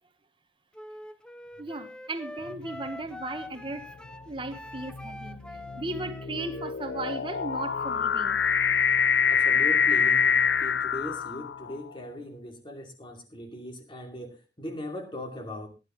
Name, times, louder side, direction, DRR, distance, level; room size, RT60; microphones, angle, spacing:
Wind instrument woodwind instrument, 0.7-8.3, left 1 dB, 5° left, 0.5 m, -44 dB
voice 1, 1.6-3.9 4.2-8.4, right 2 dB, 30° right, 1.3 m, -36 dB
sound 1, 2.5-2.9 3.7-11.9, left 6 dB, 70° left, 0.6 m, -26 dB
voice 2, 9.3-15.7, left 1 dB, 25° left, 2.8 m, -39 dB
17.5 x 10.5 x 3.1 m
head